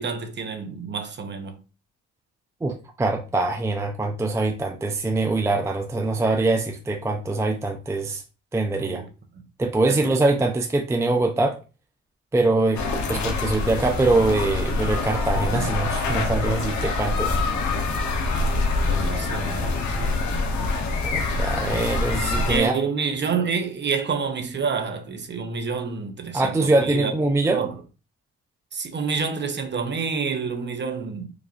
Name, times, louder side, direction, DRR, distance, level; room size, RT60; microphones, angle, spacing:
voice 1, 0.0-1.5 8.8-9.1 9.9-10.2 15.5-15.7 18.9-20.3 22.5-27.1 27.5-27.7 28.7-31.3, right 5 dB, 35° right, 0.7 m, -28 dB
voice 2, 2.6-8.2 8.5-9.0 9.6-11.6 12.3-12.8 13.1-17.3 21.0-22.7 26.3-27.6, right 2 dB, 10° right, 0.4 m, -23 dB
sound 1, 12.7-22.6, left 3 dB, 70° left, 0.8 m, -25 dB
4.8 x 2.4 x 2.4 m
cardioid pair, 90°, 30 cm